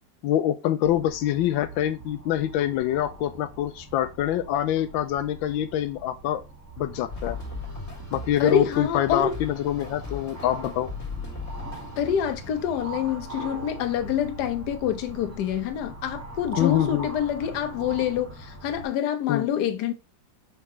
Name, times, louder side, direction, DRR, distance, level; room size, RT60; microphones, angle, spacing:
voice 1, 0.2-6.4 6.8-7.4 8.1-10.9 16.6-17.1 19.3-19.5, left 11 dB, 90° left, 1.3 m, -25 dB
sound 1, 0.8-18.9, right 2 dB, 10° right, 0.8 m, -41 dB
sound 2, 7.1-13.2, left 4 dB, 35° left, 2.0 m, -39 dB
voice 2, 8.4-9.3 12.0-19.9, left 9 dB, 65° left, 1.3 m, -26 dB
5.7 x 5.4 x 3.1 m
omnidirectional pair, 2.0 m